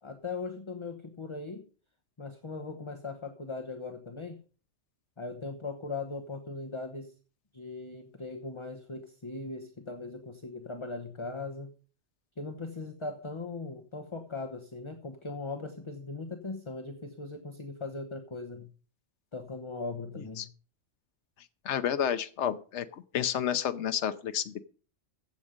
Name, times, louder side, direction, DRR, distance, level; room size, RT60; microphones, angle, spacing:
voice 1, 0.0-1.7 2.2-4.4 5.2-7.1 7.5-11.7 12.4-18.7 19.3-20.5, left 3 dB, 25° left, 6 dB, 1.1 m, -39 dB
voice 2, 21.6-24.6, left 9 dB, 80° left, 10 dB, 1.1 m, -30 dB
15.0 x 7.2 x 5.2 m, 0.40 s
omnidirectional pair, 1.2 m